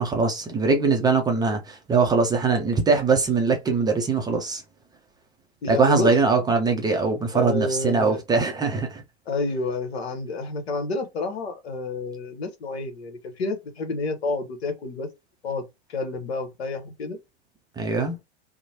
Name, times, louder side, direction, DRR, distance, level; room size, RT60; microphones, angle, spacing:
voice 1, 0.0-4.6 5.7-9.0 17.8-18.1, right 4 dB, 10° right, 0.5 m, -22 dB
voice 2, 5.6-6.1 7.3-8.2 9.3-15.1 15.4-15.6 15.9-17.2, left 3 dB, 70° left, 1.0 m, -29 dB
2.9 x 2.1 x 2.7 m
hypercardioid pair, 100°, 33 cm